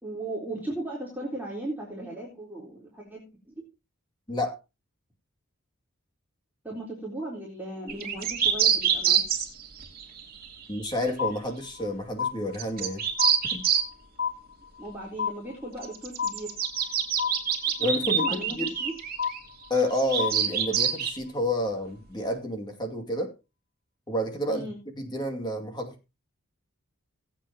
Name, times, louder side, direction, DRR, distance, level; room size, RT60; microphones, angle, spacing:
voice 1, 0.0-3.5 6.6-9.2 14.8-16.6 17.8-18.9 24.5-24.8, right 2 dB, 10° right, 3.7 m, -37 dB
sound 1, 7.9-10.8 12.5-13.9 15.8-19.4 20.0-21.1, right 8 dB, 40° right, 2.8 m, -26 dB
voice 2, 10.7-13.0 13.5-13.6 17.8-18.7 19.7-23.3 24.1-24.7 25.0-25.9, left 1 dB, 20° left, 2.4 m, -29 dB
sound 2, 11.2-11.9 12.2-12.9 13.2-13.9 14.2-14.9 15.2-15.9 16.2-16.9 17.2-17.9 18.2-18.9 19.2-19.9 20.2-20.9, left 7 dB, 55° left, 1.4 m, -31 dB
19.0 x 8.4 x 2.9 m
head